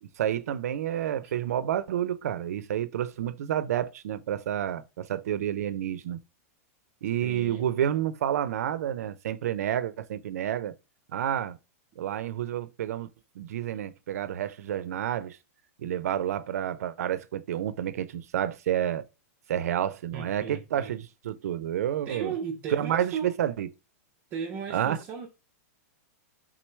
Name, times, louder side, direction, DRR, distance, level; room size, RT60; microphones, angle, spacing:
voice 1, 0.0-6.2 7.0-10.7 11.1-11.6 12.0-13.1 13.4-15.4 15.8-19.0 19.5-22.3 22.7-23.7 24.7-25.0, right 10 dB, 75° right, 0.5 m, -29 dB
voice 2, 7.2-7.6 11.3-11.4 20.1-20.9 22.1-23.3 24.3-25.3, right 6 dB, 20° right, 0.4 m, -36 dB
4.5 x 3.7 x 3.1 m
supercardioid pair, 175°, 8 cm